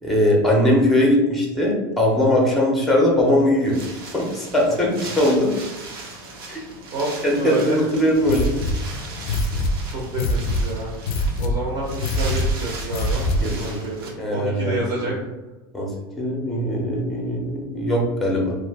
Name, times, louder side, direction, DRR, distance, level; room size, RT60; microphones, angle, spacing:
voice 1, 0.0-3.8 4.1-5.5 6.5-6.6 7.2-8.5 13.4-13.8 14.2-15.2 15.7-18.6, left 1 dB, ahead, -1 dB, 0.6 m, -20 dB
Wind, 2.9-14.1, right 3 dB, 85° right, 0.8 m, -38 dB
voice 2, 6.9-7.8 9.9-10.9 11.4-13.2 13.6-15.1, right 2 dB, 40° right, -3 dB, 0.7 m, -28 dB
sound 1, 8.2-13.6, left 1 dB, 50° left, 0.4 m, -24 dB
2.5 x 2.4 x 3.4 m, 1.1 s
supercardioid pair, 160°, 12 cm